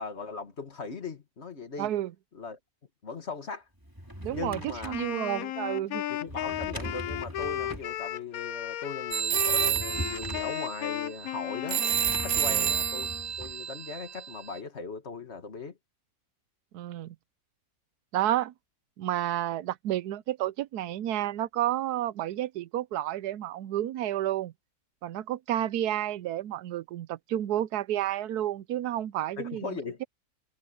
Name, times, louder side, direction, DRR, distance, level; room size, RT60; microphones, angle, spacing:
voice 1, 0.0-1.9 2.3-2.6 3.0-3.7 4.3-5.0 6.1-11.9 12.2-13.1 13.4-15.8 29.4-30.0, left 4 dB, 45° left, 2.2 m, -39 dB
voice 2, 1.8-2.1 4.2-6.0 12.5-12.7 16.7-17.2 18.1-18.5 19.0-24.5 25.0-29.8, right 12 dB, 85° right, 1.2 m, -31 dB
Drawer open or close, 3.8-5.1 6.3-7.9 9.3-10.6 11.9-13.6, equal, 15° right, 3.4 m, -41 dB
Wind instrument woodwind instrument, 4.9-13.3, left 12 dB, 70° left, 1.0 m, -35 dB
sound 1, 9.1-14.6, right 10 dB, 60° right, 0.7 m, -30 dB
omnidirectional pair, 1.6 m